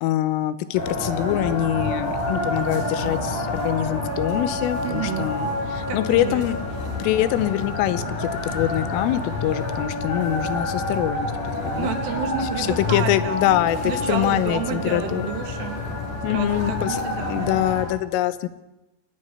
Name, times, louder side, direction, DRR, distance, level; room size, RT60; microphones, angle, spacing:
voice 1, 0.0-6.6 7.0-11.3 11.6-11.9 12.6-15.2 16.2-18.5, left 13 dB, 85° left, 13 dB, 3.5 m, -24 dB
sound 1, 0.7-17.8, left 2 dB, 40° left, 7.7 m, -28 dB
voice 2, 4.8-5.3 5.9-6.5 11.8-13.5 13.8-15.8 16.3-17.6, right 7 dB, 65° right, 6 dB, 3.6 m, -30 dB
29.0 x 9.9 x 10.0 m, 1.0 s
omnidirectional pair, 5.8 m